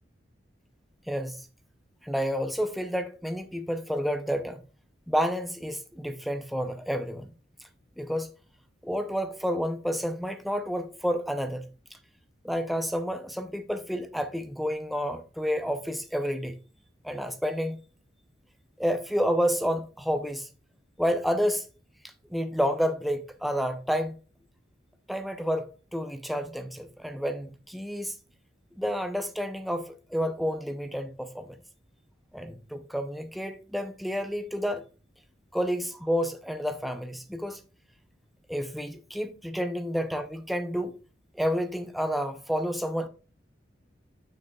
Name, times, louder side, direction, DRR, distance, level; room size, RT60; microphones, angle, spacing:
voice 1, 1.1-1.5 2.0-4.6 5.1-7.3 8.0-8.3 8.8-11.7 12.4-16.6 17.0-17.8 18.8-20.5 21.0-21.7 22.3-24.2 25.1-28.2 28.8-31.6 32.3-34.8 35.5-37.6 38.5-40.9 41.3-43.1, equal, ahead, 0.5 m, -30 dB
8.6 x 6.5 x 2.3 m
head